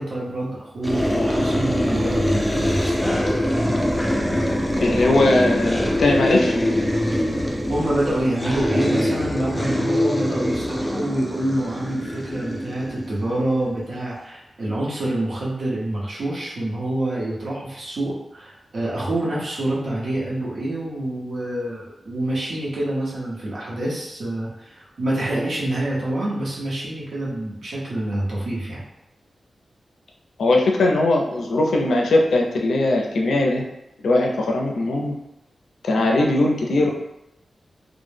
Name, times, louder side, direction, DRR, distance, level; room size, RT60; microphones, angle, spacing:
voice 1, 0.0-3.0 7.2-7.3 7.7-28.8, right 1 dB, 75° right, -6 dB, 0.7 m, -26 dB
sound 1, 0.8-13.7, equal, 5° left, 0.3 m, -23 dB
voice 2, 4.8-6.6 30.4-33.7 34.0-35.2 35.8-36.9, left 2 dB, 90° left, 0 dB, 0.4 m, -19 dB
2.0 x 2.0 x 3.2 m, 0.89 s
wide cardioid pair, 125°, 0 cm